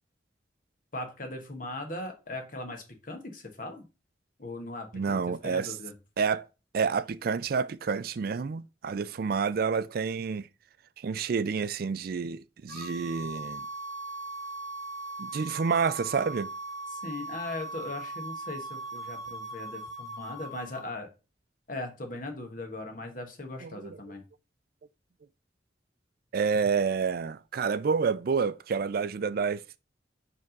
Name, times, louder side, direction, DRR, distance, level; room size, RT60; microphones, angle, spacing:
voice 1, 0.9-3.8 4.4-5.9 16.9-21.1 21.7-24.2, left 2 dB, 50° left, 1.5 m, -39 dB
voice 2, 4.9-5.7 6.2-6.5 6.7-10.5 11.0-13.6 15.2-16.5 23.6-24.0 26.3-29.8, right 5 dB, 55° right, 0.4 m, -29 dB
sound 1, 12.7-20.8, right 2 dB, 25° left, 3.0 m, -39 dB
5.4 x 3.5 x 5.2 m
head